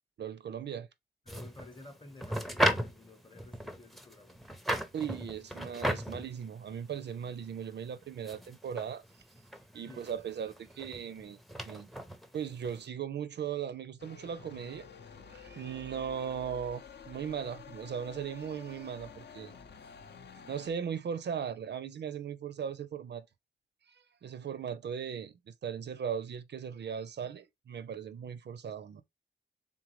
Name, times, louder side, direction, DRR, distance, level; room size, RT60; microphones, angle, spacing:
voice 1, 0.2-0.9 4.9-9.0 9.7-11.4 11.6-11.9 12.3-14.9 15.3-19.6 20.5-23.2 23.9-29.0, right 8 dB, 60° right, 0.4 m, -38 dB
voice 2, 1.3-4.4 9.8-10.1 19.8-20.0 20.4-20.5, left 2 dB, 25° left, 0.8 m, -52 dB
sound 1, 1.3-12.9, equal, ahead, 0.5 m, -36 dB
sound 2, 14.0-20.7, left 6 dB, 60° left, 0.6 m, -50 dB
3.7 x 3.7 x 3.0 m
wide cardioid pair, 145°, 20 cm